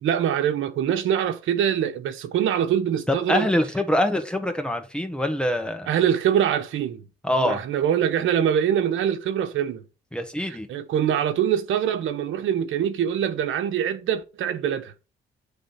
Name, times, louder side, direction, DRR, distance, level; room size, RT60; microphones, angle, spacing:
voice 1, 0.0-3.5 5.9-7.1 7.4-9.9 10.5-14.9, right 9 dB, 80° right, 1.2 m, -24 dB
voice 2, 3.1-5.9 7.2-7.6 10.1-10.7, left 1 dB, 5° left, 1.7 m, -24 dB
9.0 x 3.8 x 5.8 m
cardioid pair, 90°, 20 cm